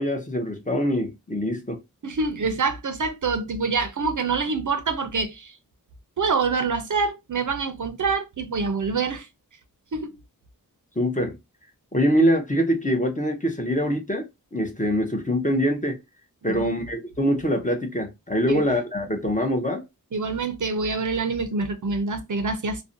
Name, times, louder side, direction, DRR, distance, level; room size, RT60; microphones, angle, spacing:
voice 1, 0.0-1.8 11.0-11.4 11.9-14.3 14.5-16.0 16.4-19.8, equal, 20° left, 0.6 m, -24 dB
voice 2, 2.0-5.6 6.2-9.3 9.9-10.2 16.4-16.9 18.5-18.6 20.1-22.8, right 4 dB, 60° right, 0.5 m, -26 dB
2.5 x 2.1 x 2.5 m
wide cardioid pair, 50°, 35 cm